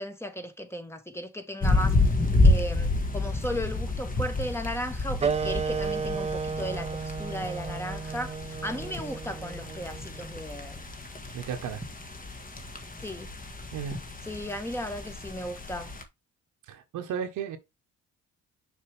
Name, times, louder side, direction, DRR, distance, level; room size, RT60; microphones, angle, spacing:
voice 1, 0.0-2.0 2.4-10.8 13.0-13.3 14.3-15.9, equal, 10° left, 1.5 m, -36 dB
sound 1, 1.6-16.0, left 2 dB, 30° left, 1.8 m, -29 dB
sound 2, 5.2-10.3, right 5 dB, 20° right, 0.4 m, -33 dB
voice 2, 11.3-11.8 13.7-14.0 16.7-17.6, right 8 dB, 85° right, 1.5 m, -34 dB
6.6 x 4.7 x 3.5 m
cardioid pair, 90°, 30 cm